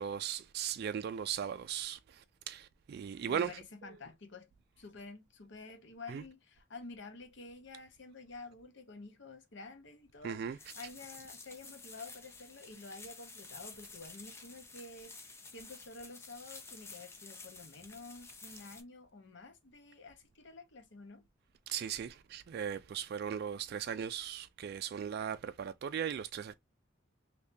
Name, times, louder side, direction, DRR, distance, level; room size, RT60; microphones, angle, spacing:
voice 1, 0.0-2.0 2.5-3.5 6.1-6.2 10.2-10.6 21.7-26.5, right 8 dB, 55° right, 0.3 m, -37 dB
voice 2, 3.3-4.5 4.8-21.2, left 3 dB, 65° left, 0.9 m, -50 dB
sound 1, 10.6-18.8, left 3 dB, 15° left, 0.5 m, -51 dB
3.6 x 2.7 x 2.6 m
head